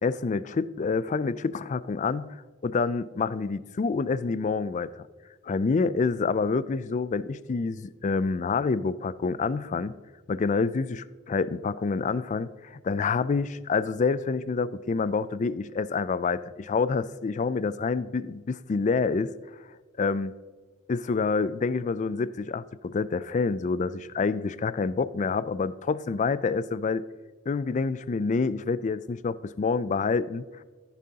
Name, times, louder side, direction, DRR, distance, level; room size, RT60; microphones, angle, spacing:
voice 1, 0.0-5.0 5.4-9.9 10.3-19.3 20.0-20.3 20.9-27.0 27.5-30.6, left 4 dB, 35° left, 17 dB, 0.3 m, -27 dB
14.5 x 10.0 x 2.8 m, 1.4 s
head